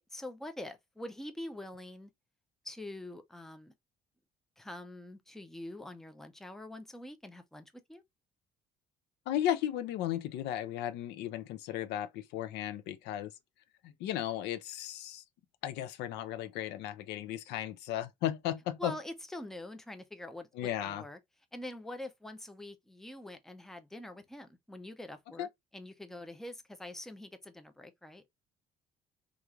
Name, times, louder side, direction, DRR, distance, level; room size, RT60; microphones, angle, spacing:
voice 1, 0.0-2.1 2.6-3.7 4.6-8.0 18.8-21.2 21.5-28.3, left 1 dB, ahead, 0.5 m, -45 dB
voice 2, 9.3-13.3 13.8-15.2 15.6-18.9 20.6-21.0 25.4-25.5, left 12 dB, 85° left, 0.5 m, -35 dB
3.0 x 2.4 x 2.3 m
cardioid pair, 110°, 17 cm